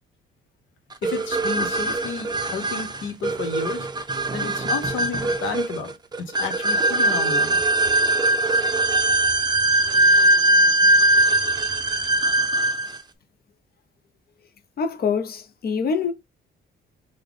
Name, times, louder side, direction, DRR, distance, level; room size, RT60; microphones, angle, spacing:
voice 1, 1.0-3.9 4.3-7.6, left 5 dB, 80° left, 1.0 m, -32 dB
sound 1, 1.0-13.0, right 2 dB, 20° right, 0.5 m, -21 dB
voice 2, 14.8-16.1, left 5 dB, 50° left, 0.7 m, -25 dB
3.4 x 2.2 x 3.6 m
cardioid pair, 90°, 20 cm